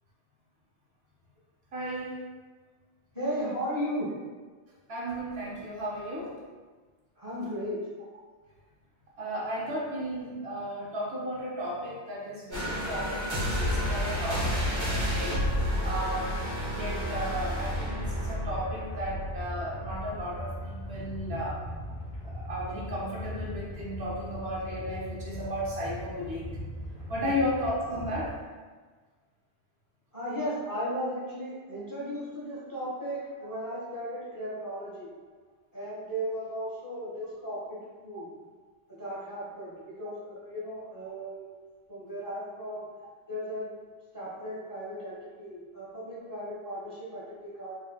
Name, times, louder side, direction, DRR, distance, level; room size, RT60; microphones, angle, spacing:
voice 1, 1.7-2.2 4.9-6.4 9.2-15.5 15.8-16.3 16.7-21.6 22.2-26.6 27.1-28.3, equal, 70° right, -4 dB, 1.0 m, -34 dB
voice 2, 3.1-4.1 7.2-7.8 27.2-27.5 30.1-35.1 35.7-38.3 38.9-41.5 41.9-42.9 43.3-43.8 44.1-47.7, equal, 20° left, -9 dB, 0.9 m, -36 dB
sound 1, 12.5-20.7 21.1-21.3, equal, 25° right, 1.6 m, -31 dB
sound 2, 16.0-28.3, equal, 5° right, 0.9 m, -39 dB
4.4 x 2.7 x 2.2 m, 1.4 s
omnidirectional pair, 1.1 m